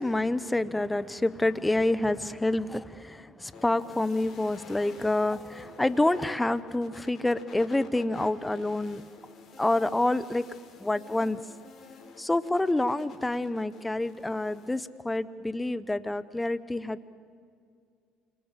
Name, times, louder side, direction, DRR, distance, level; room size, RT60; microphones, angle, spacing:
voice 1, 0.0-9.0 9.6-10.5 10.8-11.4 12.2-17.1, left 2 dB, 10° left, 14 dB, 1.1 m, -28 dB
sound 1, 3.5-14.8, left 4 dB, 50° left, 3.9 m, -50 dB
29.0 x 24.0 x 7.6 m, 2.2 s
hypercardioid pair, 70°, 0 cm